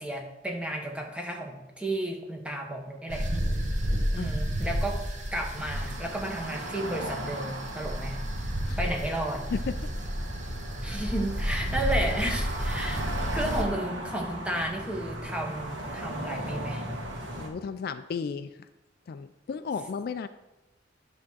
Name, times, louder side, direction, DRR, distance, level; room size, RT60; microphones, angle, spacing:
voice 1, 0.0-3.3 4.1-5.0 5.3-8.2 8.8-9.5 10.8-13.0 13.3-16.9, right 1 dB, 5° right, 1 dB, 1.0 m, -33 dB
sound 1, 3.1-13.6, equal, 40° right, 1.1 m, -31 dB
sound 2, 5.5-17.5, right 1 dB, 90° right, 1.6 m, -38 dB
voice 2, 17.4-18.5 19.1-20.3, left 5 dB, 55° left, 12 dB, 0.3 m, -33 dB
10.0 x 3.6 x 6.1 m, 1.0 s
head